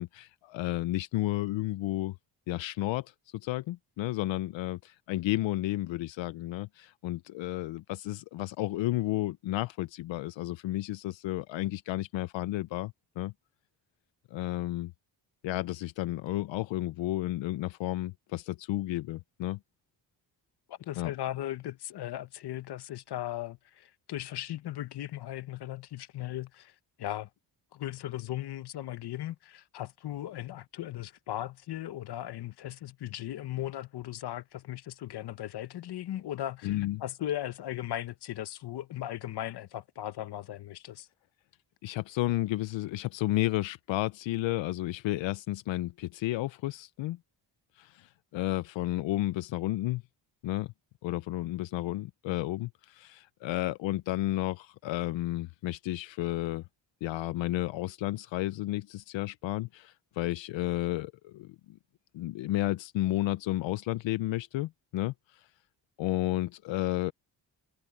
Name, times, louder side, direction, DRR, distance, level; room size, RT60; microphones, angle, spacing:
voice 1, 0.0-2.2 2.5-13.3 14.3-14.9 15.4-19.6 21.0-21.1 36.6-37.0 41.8-47.2 47.7-50.0 50.4-50.7 51.0-56.6 57.0-61.8 62.1-65.5 66.0-67.1, left 16 dB, 85° left, 0.6 m, -32 dB
voice 2, 20.7-27.3 27.7-41.1, left 13 dB, 60° left, 0.9 m, -37 dB
wide cardioid pair, 170°, 44 cm